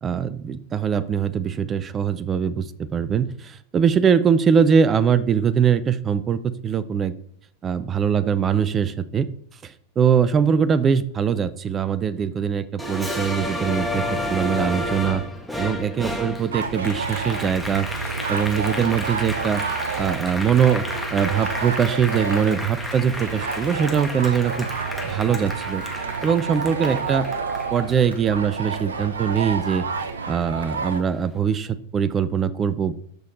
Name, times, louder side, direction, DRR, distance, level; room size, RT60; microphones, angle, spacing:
voice 1, 0.0-7.2 7.6-9.3 9.6-14.0 14.3-15.2 15.6-17.9 18.3-19.6 20.0-24.7 25.0-25.8 26.2-27.3 27.7-29.9 30.3-32.9, right 7 dB, 25° right, 16 dB, 0.7 m, -22 dB
Applause, 12.8-29.6 30.0-31.2, left 1 dB, ahead, 1.8 m, -32 dB
sound 1, 16.5-31.0, right 5 dB, 70° right, 0.8 m, -30 dB
13.5 x 6.5 x 4.1 m, 0.66 s
figure-of-eight pair, 90°, 0 cm